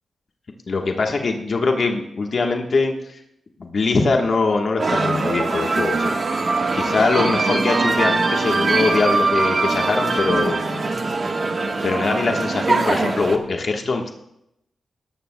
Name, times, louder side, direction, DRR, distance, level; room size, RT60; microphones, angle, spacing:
voice 1, 0.7-3.2 3.6-6.1 6.7-10.6 11.7-14.1, left 3 dB, 55° left, 2 dB, 1.3 m, -22 dB
sound 1, 4.8-13.4, right 3 dB, 50° right, 1.3 m, -22 dB
18.0 x 13.0 x 2.2 m, 0.81 s
cardioid pair, 80°, 0 cm